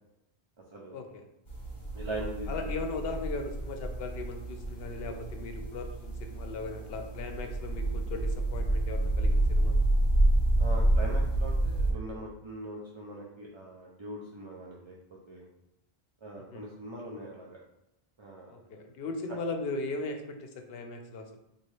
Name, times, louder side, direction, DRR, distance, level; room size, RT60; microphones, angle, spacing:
voice 1, 0.9-1.3 2.5-9.8 16.4-16.7 18.5-21.4, left 3 dB, 75° left, 5 dB, 0.8 m, -38 dB
sound 1, 1.5-11.9, right 1 dB, 50° left, 1.3 m, -28 dB
voice 2, 1.9-2.7 10.6-14.9 15.3-15.5 16.2-17.6 18.2-18.5, right 1 dB, 45° right, -4 dB, 0.4 m, -41 dB
4.4 x 2.4 x 3.1 m, 0.87 s
omnidirectional pair, 1.0 m